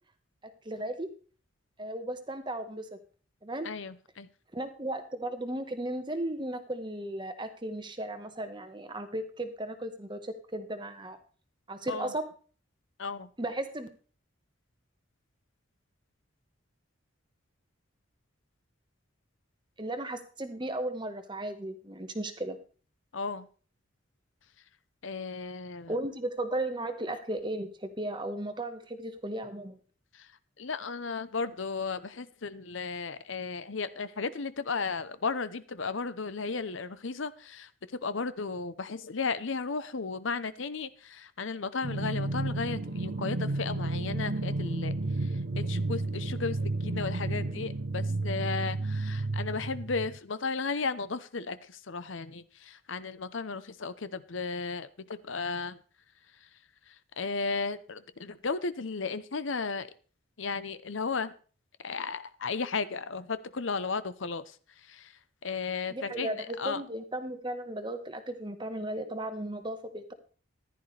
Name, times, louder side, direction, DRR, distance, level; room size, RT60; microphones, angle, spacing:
voice 1, 0.4-1.1 1.8-2.9 3.4-3.7 4.5-11.2 11.7-12.3 13.4-13.9 19.8-22.6 25.9-29.8 65.9-70.1, right 1 dB, 20° right, 8 dB, 1.3 m, -35 dB
voice 2, 3.6-4.3 11.9-12.1 13.0-13.3 23.1-23.5 25.0-25.9 30.1-30.3 30.6-37.7 38.0-44.9 45.2-45.3 45.6-55.8 56.9-59.9 60.4-61.3 61.8-64.5 64.9-65.1 65.4-66.8, left 4 dB, 70° left, 14 dB, 0.8 m, -34 dB
sound 1, 41.8-50.2, right 2 dB, 55° right, 0.8 m, -32 dB
15.0 x 11.0 x 3.3 m, 0.40 s
head